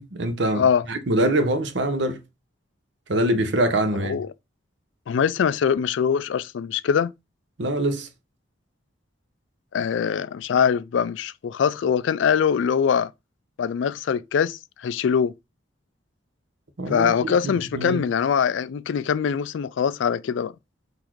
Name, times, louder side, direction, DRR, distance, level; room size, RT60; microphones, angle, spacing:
voice 1, 0.0-2.2 3.1-4.2 7.6-8.1 16.8-18.0, right 1 dB, 65° right, 0.7 m, -24 dB
voice 2, 5.1-7.1 9.7-13.1 13.6-15.3 16.9-20.5, left 7 dB, 70° left, 0.3 m, -23 dB
4.0 x 2.6 x 4.5 m
head